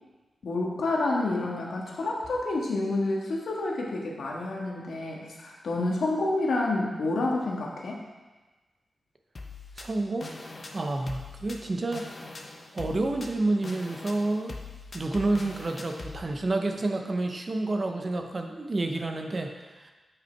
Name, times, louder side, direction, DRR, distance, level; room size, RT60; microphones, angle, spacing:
voice 1, 0.4-8.0, left 2 dB, 75° left, -2 dB, 1.5 m, -29 dB
sound 1, 9.4-16.2, left 3 dB, 35° left, 0.7 m, -42 dB
voice 2, 9.8-10.3 10.7-12.1 12.7-14.6 14.9-19.9, right 2 dB, 30° right, 4 dB, 0.6 m, -29 dB
8.0 x 5.7 x 4.5 m, 1.2 s
wide cardioid pair, 175°, 0 cm